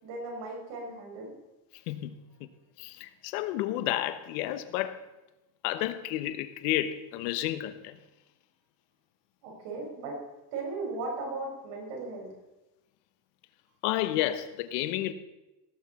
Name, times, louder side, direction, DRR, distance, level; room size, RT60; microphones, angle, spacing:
voice 1, 0.0-1.3 9.4-10.1 10.5-12.3, right 3 dB, 65° right, 5.1 m, -37 dB
voice 2, 1.9-2.5 2.8-5.0 5.6-8.0 13.8-15.1, left 13 dB, 80° left, 1.1 m, -31 dB
17.5 x 8.1 x 4.2 m
cardioid pair, 150°, 47 cm